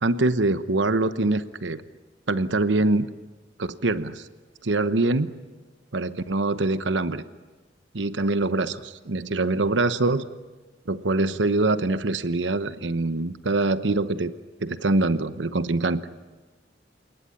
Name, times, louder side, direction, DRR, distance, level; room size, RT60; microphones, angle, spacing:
voice 1, 0.0-1.8 2.3-3.1 3.6-4.2 4.6-5.4 5.9-7.2 7.9-10.3 10.9-14.3 14.6-16.0, right 2 dB, 90° right, 13 dB, 1.0 m, -24 dB
29.5 x 19.0 x 10.0 m, 1.3 s
head